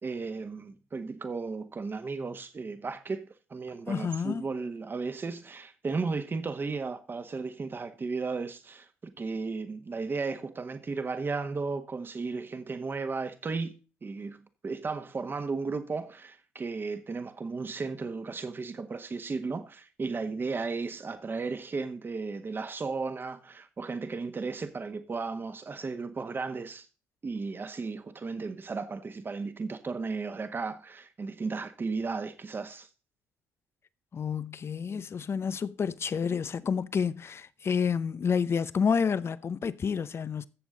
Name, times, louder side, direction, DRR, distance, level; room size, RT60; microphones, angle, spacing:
voice 1, 0.0-26.9 27.2-32.9, right 4 dB, 35° right, 1.6 m, -35 dB
voice 2, 3.9-4.5 34.1-40.5, left 6 dB, 40° left, 0.7 m, -29 dB
14.5 x 7.1 x 3.9 m
hypercardioid pair, 60°, 6 cm